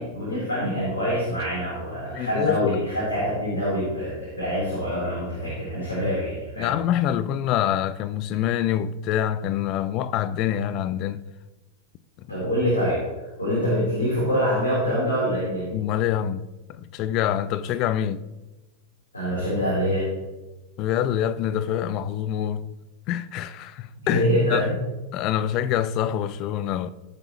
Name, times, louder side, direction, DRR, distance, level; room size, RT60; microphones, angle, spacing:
voice 1, 0.0-6.8 12.3-13.0 13.4-15.7 19.1-20.1 24.0-24.8, equal, 75° left, 4.2 m, -25 dB
voice 2, 2.1-2.8 6.6-11.2 15.7-18.2 20.8-22.6 23.1-24.2 24.5-24.7 25.1-26.9, left 10 dB, 40° left, 0.5 m, -25 dB
17.5 x 7.2 x 3.1 m
figure-of-eight pair, 90°, 0 cm